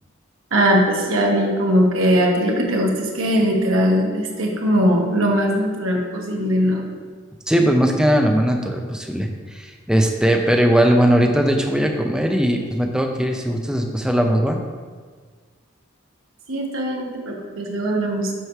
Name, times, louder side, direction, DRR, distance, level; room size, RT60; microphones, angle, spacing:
voice 1, 0.5-6.8 16.5-18.3, equal, 85° right, 0 dB, 1.2 m, -20 dB
voice 2, 7.5-14.6, equal, 5° right, 3 dB, 0.5 m, -19 dB
7.9 x 3.1 x 5.7 m, 1.5 s
head